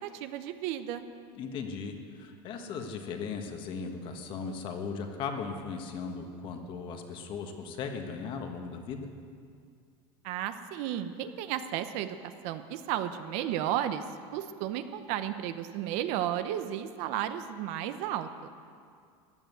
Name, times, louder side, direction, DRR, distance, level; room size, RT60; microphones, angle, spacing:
voice 1, 0.0-1.1 10.2-12.2 12.4-14.0 14.3-18.5, right 11 dB, 55° right, 10 dB, 0.8 m, -33 dB
voice 2, 1.4-9.1, left 5 dB, 40° left, 5 dB, 1.5 m, -37 dB
15.0 x 10.5 x 8.0 m, 2.3 s
cardioid pair, 160°, 13 cm